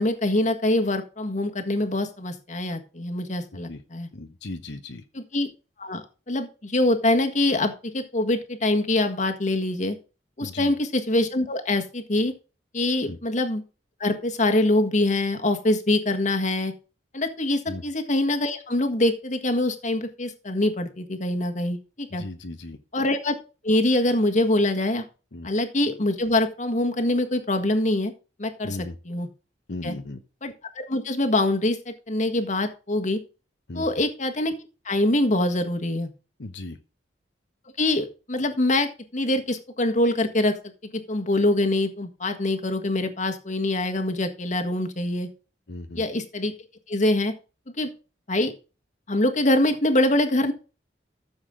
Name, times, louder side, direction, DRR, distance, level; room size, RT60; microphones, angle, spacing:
voice 1, 0.0-4.1 5.1-5.5 5.8-10.0 10.4-12.3 12.7-13.6 14.0-16.7 17.1-22.2 22.9-23.3 23.6-25.0 25.4-28.1 28.4-28.8 29.0-29.3 29.8-29.9 30.4-33.2 33.7-34.5 34.8-36.1 37.8-40.6 40.9-45.3 46.0-46.5 46.9-47.3 47.8-47.9 48.3-48.5 49.1-50.5, left 1 dB, 45° left, 6 dB, 1.6 m, -24 dB
voice 2, 4.1-5.0 10.4-10.7 13.0-13.2 17.7-17.8 22.1-22.8 25.3-25.5 28.6-29.0 29.7-30.2 33.7-33.9 36.4-36.8 45.7-46.1, left 2 dB, 80° left, 7 dB, 1.0 m, -36 dB
14.0 x 7.2 x 3.8 m, 0.33 s
head